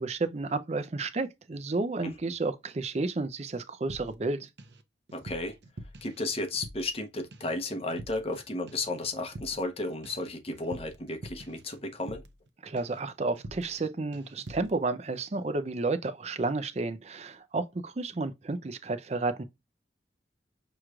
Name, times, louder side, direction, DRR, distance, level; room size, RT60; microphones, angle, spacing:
voice 1, 0.0-4.5 12.6-19.4, right 3 dB, 40° right, 0.5 m, -31 dB
sound 1, 3.9-4.8 5.1-7.0 7.3-7.6 7.9-8.4 8.7-12.5 12.8-13.1 13.4-13.9 14.1-14.8, right 1 dB, 75° right, 0.7 m, -46 dB
voice 2, 5.1-5.6 6.0-12.2, left 2 dB, 35° left, 0.8 m, -33 dB
6.2 x 3.1 x 2.3 m
head